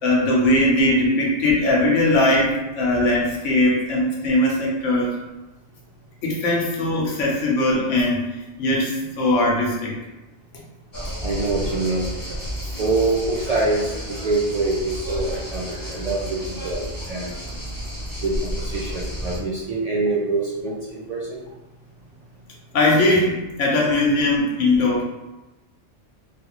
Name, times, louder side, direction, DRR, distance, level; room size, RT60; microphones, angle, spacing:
voice 1, 0.0-5.1 6.2-8.2 8.6-9.9 22.7-25.0, left 1 dB, 85° left, -3 dB, 1.1 m, -20 dB
sound 1, 10.9-19.4, equal, 30° left, 0.4 m, -31 dB
voice 2, 11.2-12.1 12.8-17.3 18.2-21.4, right 2 dB, 90° right, -5 dB, 0.3 m, -25 dB
3.4 x 2.4 x 2.9 m, 1.0 s
omnidirectional pair, 1.2 m